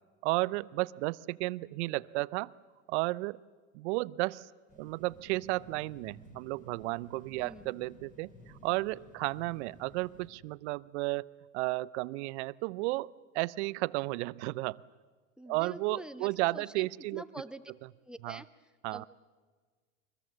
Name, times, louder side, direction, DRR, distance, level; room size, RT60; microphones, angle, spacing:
voice 1, 0.2-2.5 2.9-3.4 3.7-4.5 4.8-13.1 13.3-14.8 15.5-17.2 18.2-18.4 18.8-19.0, right 22 dB, 60° right, 20 dB, 0.6 m, -33 dB
sound 1, 4.7-10.3, left 1 dB, 20° left, 7.0 m, -55 dB
voice 2, 7.4-7.7 15.4-17.6 18.0-18.5 18.9-19.0, right 1 dB, ahead, 14 dB, 0.9 m, -46 dB
24.0 x 21.0 x 7.5 m, 1.4 s
hypercardioid pair, 95°, 40 cm